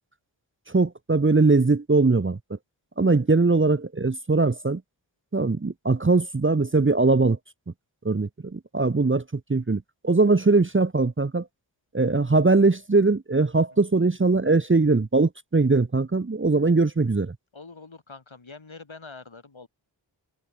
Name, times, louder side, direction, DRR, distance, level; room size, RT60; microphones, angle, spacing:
voice 1, 0.7-2.6 3.0-4.8 5.3-7.4 8.0-11.5 11.9-17.3, right 3 dB, 25° right, 0.8 m, -21 dB
voice 2, 17.5-19.7, left 4 dB, 85° left, 7.0 m, -44 dB
wide cardioid pair, 45°, 46 cm